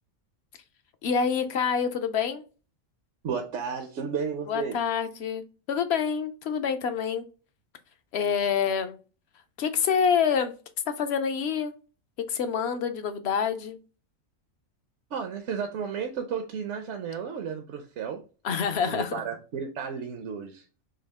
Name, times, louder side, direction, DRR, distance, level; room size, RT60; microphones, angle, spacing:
voice 1, 1.0-2.4 4.5-5.4 5.7-7.3 8.1-9.0 9.6-10.5 10.9-11.7 12.3-13.8 18.4-19.2, left 7 dB, 60° left, 0.8 m, -26 dB
voice 2, 3.2-4.8 15.1-18.2 18.8-20.6, right 6 dB, 65° right, 1.0 m, -33 dB
6.3 x 2.4 x 3.5 m
omnidirectional pair, 1.3 m